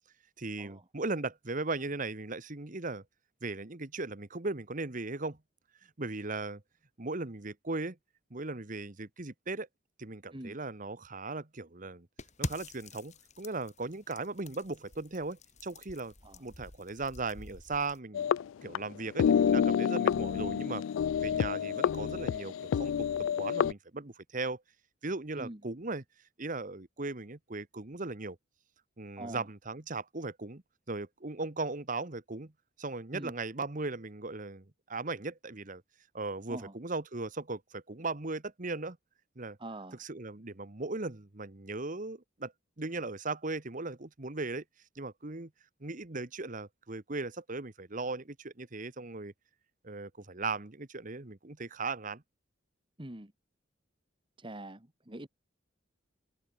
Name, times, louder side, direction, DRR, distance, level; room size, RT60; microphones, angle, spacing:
voice 1, 0.4-3.0 3.4-5.4 6.0-6.6 7.0-8.0 8.3-9.7 10.0-12.1 12.4-16.1 16.4-18.3 18.6-20.8 21.2-23.1 23.4-24.6 25.0-26.0 26.4-28.4 29.0-30.6 30.9-32.5 32.8-35.8 36.1-39.0 39.4-39.6 40.0-42.5 42.8-44.6 44.9-45.5 45.8-49.3 49.8-52.2, right 3 dB, 40° right, 1.4 m, -38 dB
sound 1, 12.2-18.0, left 2 dB, 35° left, 2.6 m, -45 dB
sound 2, 18.1-18.9 19.2-23.7, left 8 dB, 85° left, 0.3 m, -28 dB
voice 2, 39.6-40.0 53.0-53.3 54.4-55.3, right 1 dB, 25° right, 2.0 m, -44 dB
open air
head